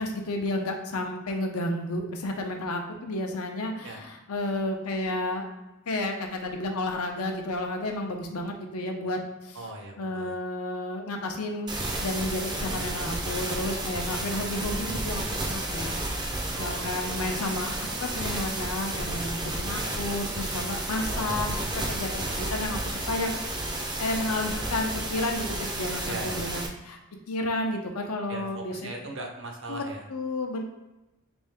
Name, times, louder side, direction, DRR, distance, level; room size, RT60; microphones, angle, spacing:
voice 1, 0.0-5.4 5.9-9.6 10.0-11.7 12.0-16.0 16.5-23.3 24.0-27.0 27.3-28.9 29.7-29.8 30.1-30.6, left 1 dB, 85° left, 3 dB, 0.6 m, -31 dB
voice 2, 9.5-10.4 14.3-14.5 16.5-17.0 19.7-19.9 21.1-21.5 26.1-26.5 28.3-30.0, right 2 dB, 60° right, 3 dB, 0.6 m, -39 dB
sound 1, 11.7-26.7, right 1 dB, 20° right, 0.4 m, -32 dB
3.4 x 2.7 x 3.5 m, 0.97 s
head